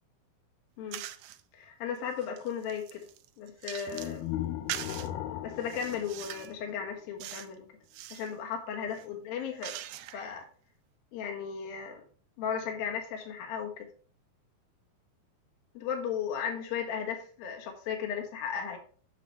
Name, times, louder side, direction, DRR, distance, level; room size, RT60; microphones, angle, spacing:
sound 1, 0.9-1.4 2.0-4.2 4.7-5.1 5.6-6.6 7.2-7.6 7.8-8.3 8.9-10.4, right 13 dB, 85° right, 2.6 m, -42 dB
voice 1, 1.5-3.0 3.4-4.3 5.4-7.7 8.1-9.8 10.1-10.5 11.1-12.0 12.4-13.9 15.7-18.8, left 7 dB, 70° left, 2 dB, 3.2 m, -35 dB
sound 2, 3.9-7.0, left 12 dB, 90° left, 2.6 m, -38 dB
10.0 x 6.7 x 3.2 m, 0.42 s
omnidirectional pair, 4.4 m